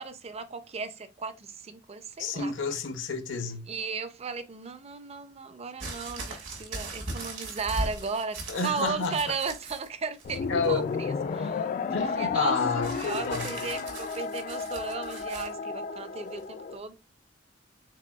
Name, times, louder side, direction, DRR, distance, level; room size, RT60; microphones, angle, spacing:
voice 1, 0.0-2.5 3.7-11.6 12.0-12.6 12.9-16.9, right 5 dB, 35° right, 0.5 m, -35 dB
voice 2, 2.2-3.6 8.5-9.3 10.5-10.9 11.9-13.5, left 4 dB, 75° left, 0.8 m, -29 dB
sound 1, 5.8-9.9 10.2-10.8 12.8-15.5 16.4-16.5, right 2 dB, 70° right, 1.6 m, -39 dB
sound 2, 10.2-16.8, left 5 dB, 45° left, 0.3 m, -33 dB
4.8 x 3.8 x 2.3 m
head